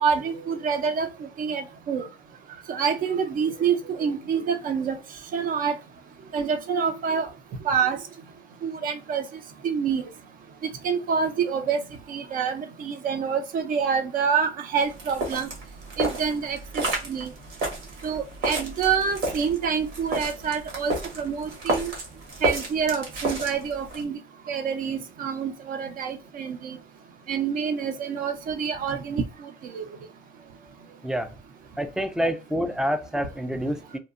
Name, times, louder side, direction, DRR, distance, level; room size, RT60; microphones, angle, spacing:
voice 1, 0.0-2.1 2.7-5.0 5.3-5.8 6.3-7.3 7.6-8.0 8.6-9.2 9.6-10.0 10.6-11.8 12.1-15.5 16.0-17.3 18.0-21.9 22.4-24.2 24.5-26.8 27.3-29.8, right 6 dB, 55° right, 0.5 m, -27 dB
sound 1, 14.8-24.0, right 2 dB, 85° right, 1.1 m, -31 dB
voice 2, 31.8-34.0, equal, 5° right, 0.3 m, -27 dB
2.7 x 2.2 x 2.4 m
cardioid pair, 110°, 17 cm